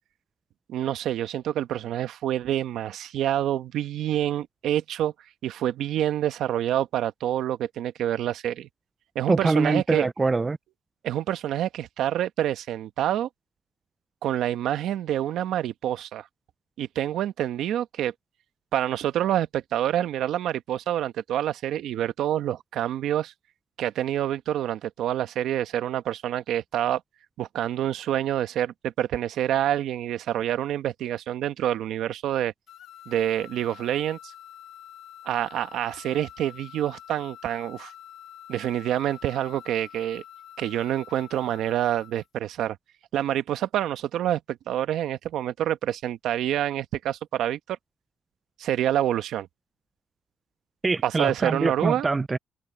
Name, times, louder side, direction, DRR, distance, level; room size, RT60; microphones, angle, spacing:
voice 1, 0.7-5.1 5.4-8.7 9.1-10.1 11.0-13.3 14.2-16.3 16.8-18.1 18.7-23.3 23.8-27.0 27.4-32.5 33.1-34.2 35.2-37.9 38.5-40.2 40.6-42.8 43.1-47.8 48.6-49.5 51.0-52.1, right 11 dB, 80° right, 1.2 m, -27 dB
voice 2, 9.3-10.6 50.8-52.4, right 3 dB, 25° right, 0.3 m, -24 dB
sound 1, 32.7-42.3, left 11 dB, 75° left, 1.8 m, -47 dB
cardioid pair, 90°, 0 cm